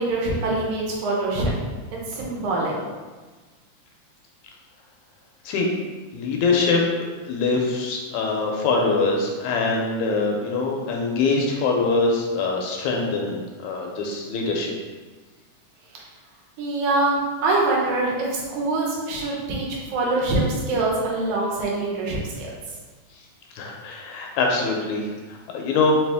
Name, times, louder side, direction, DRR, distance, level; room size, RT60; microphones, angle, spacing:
voice 1, 0.0-1.5 2.1-2.8 15.9-16.0 16.6-22.5, right 2 dB, 80° right, -3 dB, 2.3 m, -24 dB
voice 2, 6.1-6.8 7.2-14.7 23.6-25.9, left 3 dB, 80° left, 0 dB, 1.8 m, -23 dB
4.9 x 2.8 x 3.4 m, 1.3 s
omnidirectional pair, 3.4 m